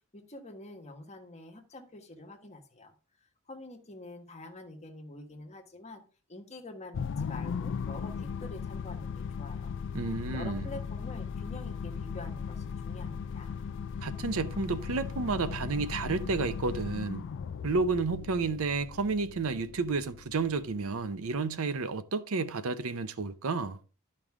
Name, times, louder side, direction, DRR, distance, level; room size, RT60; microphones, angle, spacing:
voice 1, 0.1-2.9 3.5-6.0 6.3-9.7 10.3-13.5, left 2 dB, 30° left, 1.5 m, -46 dB
sound 1, 6.9-21.4, left 6 dB, 55° left, 0.3 m, -38 dB
voice 2, 9.9-10.6 14.0-17.2 17.6-23.8, right 4 dB, 70° right, 0.6 m, -31 dB
11.5 x 5.4 x 3.6 m
head